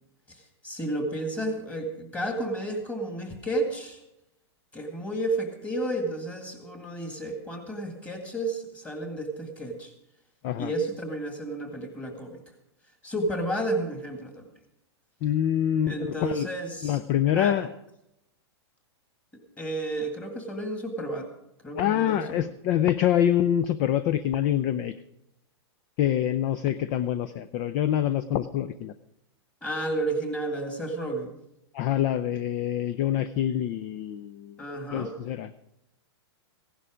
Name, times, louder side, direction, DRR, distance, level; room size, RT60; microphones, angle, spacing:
voice 1, 0.3-4.0 4.7-9.9 10.6-12.4 13.0-14.4 15.9-17.0 17.4-17.6 19.6-21.3 21.6-22.4 29.6-31.4 34.6-35.1, right 1 dB, 10° left, 4 dB, 2.0 m, -32 dB
voice 2, 15.2-16.5 16.8-17.7 21.8-24.9 26.0-28.9 31.7-34.6 34.9-35.5, left 11 dB, 30° left, 15 dB, 0.4 m, -25 dB
15.5 x 11.0 x 5.0 m, 0.84 s
hypercardioid pair, 155°, 14 cm